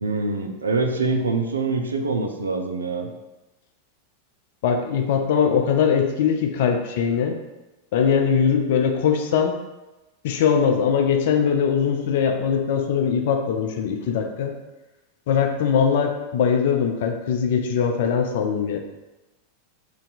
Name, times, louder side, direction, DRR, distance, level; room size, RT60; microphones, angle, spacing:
voice 1, 0.0-3.1, right 3 dB, 75° right, 5 dB, 0.3 m, -24 dB
voice 2, 4.6-7.4 7.9-9.6 10.2-14.5 15.3-18.8, left 7 dB, 55° left, 4 dB, 0.3 m, -21 dB
2.6 x 2.2 x 4.0 m, 1.1 s
figure-of-eight pair, 90°, 0 cm